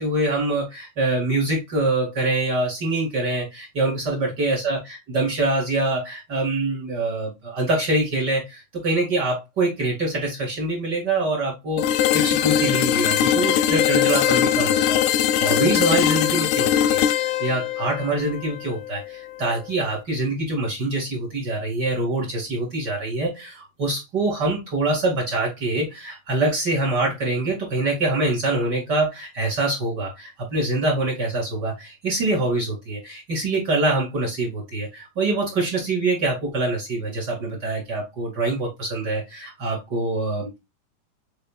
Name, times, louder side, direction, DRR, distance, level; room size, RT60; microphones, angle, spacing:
voice 1, 0.0-40.6, right 2 dB, 40° right, -2 dB, 2.1 m, -25 dB
sound 1, 11.8-19.6, left 10 dB, 80° left, 1.7 m, -21 dB
5.4 x 3.7 x 2.3 m, 0.22 s
omnidirectional pair, 3.7 m